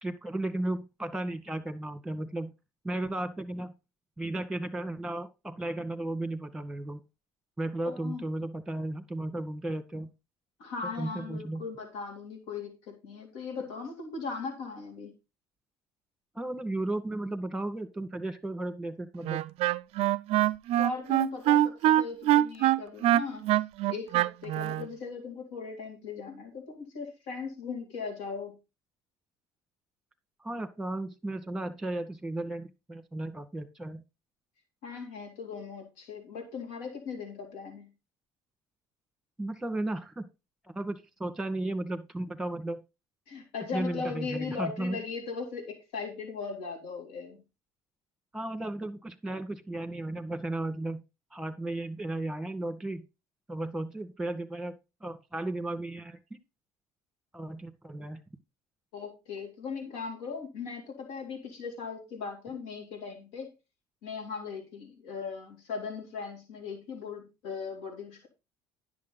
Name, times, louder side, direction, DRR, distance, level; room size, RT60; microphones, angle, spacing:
voice 1, 0.0-2.5 2.8-3.7 4.2-7.0 7.6-10.1 11.0-11.6 16.3-19.4 30.4-34.0 39.4-40.2 40.6-42.8 43.7-45.0 48.3-51.0 51.3-53.0 53.5-54.7 55.0-56.2 57.3-58.2, right 1 dB, 5° right, 11 dB, 1.5 m, -34 dB
voice 2, 7.9-8.2 10.6-15.1 20.8-23.5 23.9-28.5 34.8-37.9 43.3-47.4 58.9-63.5 64.0-68.3, left 5 dB, 80° left, 2 dB, 3.3 m, -38 dB
Wind instrument woodwind instrument, 19.2-24.9, right 13 dB, 60° right, 0.4 m, -24 dB
10.5 x 6.5 x 4.0 m, 0.27 s
hypercardioid pair, 70°, 11 cm